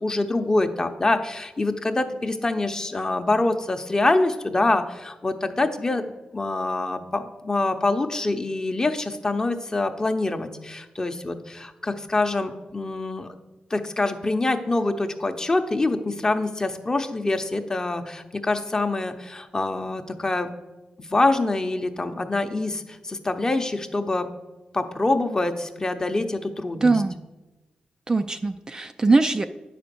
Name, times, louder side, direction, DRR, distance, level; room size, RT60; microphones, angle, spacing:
voice 1, 0.0-13.3 13.7-20.5 21.0-24.3 24.7-26.9, left 2 dB, 25° left, 7 dB, 0.8 m, -25 dB
voice 2, 26.7-27.2 28.1-29.4, right 3 dB, 25° right, 7 dB, 0.4 m, -21 dB
9.8 x 5.0 x 6.9 m, 1.1 s
wide cardioid pair, 110°, 3 cm